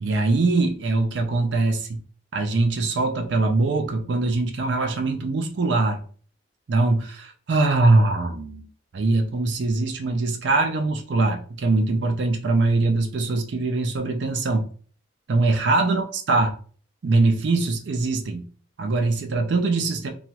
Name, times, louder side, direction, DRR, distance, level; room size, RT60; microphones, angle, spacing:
voice 1, 0.0-2.0 2.3-6.0 6.7-8.7 8.9-14.7 15.3-16.5 17.0-18.4 18.8-20.1, right 3 dB, 60° right, 0.4 m, -22 dB
2.9 x 2.3 x 2.9 m
head